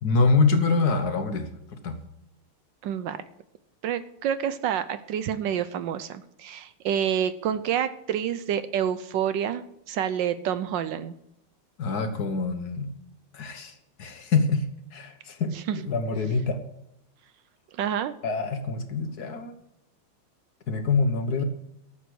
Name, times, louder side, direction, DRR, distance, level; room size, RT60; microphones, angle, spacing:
voice 1, 0.0-2.0 11.8-12.9 13.3-16.6 18.2-19.5 20.7-21.4, left 4 dB, 50° left, 7 dB, 1.6 m, -25 dB
voice 2, 2.8-3.2 3.8-11.1 17.7-18.1, right 9 dB, 70° right, 13 dB, 1.2 m, -28 dB
13.5 x 7.4 x 6.3 m, 0.82 s
omnidirectional pair, 2.4 m